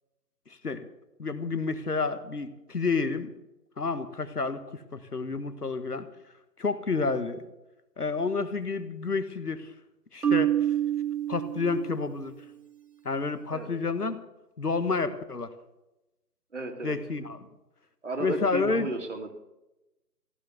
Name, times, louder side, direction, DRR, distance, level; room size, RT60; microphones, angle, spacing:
voice 1, 1.2-3.3 3.8-6.1 6.6-7.5 8.0-9.7 10.1-10.7 11.3-12.3 13.0-14.2 14.6-15.5 16.8-17.4 18.2-18.9, left 4 dB, 65° left, 11 dB, 1.4 m, -30 dB
Marimba xylophone, 10.2-12.3, right 11 dB, 65° right, 1.0 m, -27 dB
voice 2, 16.5-17.0 18.0-19.3, right 2 dB, 45° right, 4 dB, 2.2 m, -33 dB
15.5 x 10.0 x 6.9 m, 0.97 s
figure-of-eight pair, 165°, 50 cm